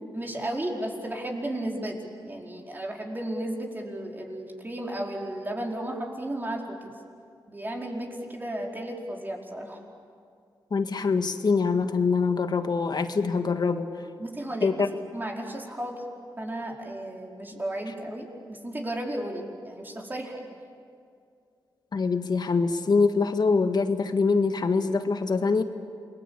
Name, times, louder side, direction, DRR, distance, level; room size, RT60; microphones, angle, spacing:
voice 1, 0.1-2.0 2.2-7.0 7.5-9.8 14.2-14.7 15.1-16.0 16.4-20.4, right 1 dB, 20° right, 0 dB, 4.7 m, -34 dB
voice 2, 10.7-13.9 14.6-14.9 21.9-25.6, left 4 dB, 55° left, 8 dB, 1.8 m, -24 dB
28.0 x 21.5 x 8.7 m, 2.3 s
cardioid pair, 70°, 9 cm